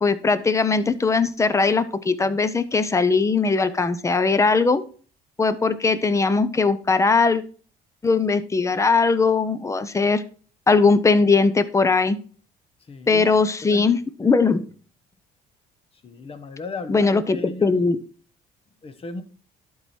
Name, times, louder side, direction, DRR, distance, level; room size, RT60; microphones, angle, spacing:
voice 1, 0.0-4.8 5.4-7.4 8.0-10.2 10.7-12.2 13.1-14.7 16.9-18.0, left 4 dB, 15° left, 14 dB, 0.7 m, -20 dB
voice 2, 12.9-13.9 16.0-17.7 18.8-19.2, left 3 dB, 35° left, 10 dB, 1.1 m, -36 dB
11.5 x 4.8 x 4.3 m, 0.41 s
cardioid pair, 110°, 17 cm